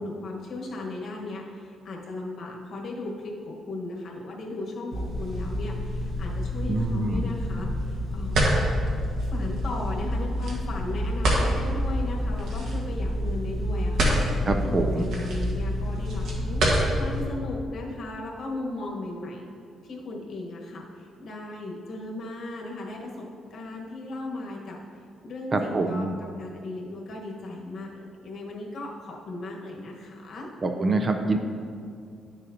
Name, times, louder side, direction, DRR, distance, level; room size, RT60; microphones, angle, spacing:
voice 1, 0.0-8.6 9.3-16.6 17.0-19.5 19.8-24.8 25.2-30.5, left 2 dB, 45° left, -1 dB, 1.2 m, -36 dB
sound 1, 4.9-17.2, equal, 70° right, 1.3 m, -27 dB
voice 2, 6.7-7.3 14.5-15.1 25.5-26.1 30.6-31.4, right 3 dB, 25° right, 5 dB, 0.4 m, -25 dB
10.5 x 6.6 x 2.7 m, 2.3 s
cardioid pair, 175°, 0 cm